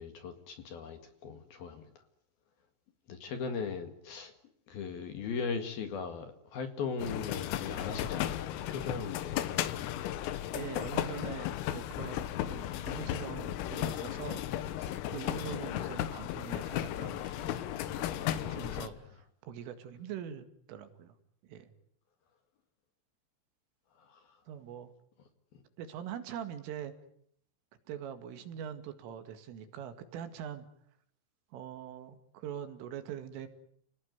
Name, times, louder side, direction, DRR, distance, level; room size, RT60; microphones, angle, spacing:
voice 1, 0.0-1.8 3.1-4.3 4.7-10.0 14.3-14.4 18.1-18.6 24.1-24.2, left 5 dB, 60° left, 8 dB, 3.2 m, -39 dB
sound 1, 7.0-18.9, left 12 dB, 85° left, 3.9 m, -35 dB
voice 2, 10.5-14.5 14.8-21.1 21.5-21.7 24.5-24.9 25.8-26.9 27.9-30.7 31.5-33.5, right 9 dB, 75° right, 9 dB, 4.5 m, -43 dB
30.0 x 19.0 x 9.4 m, 0.66 s
omnidirectional pair, 5.9 m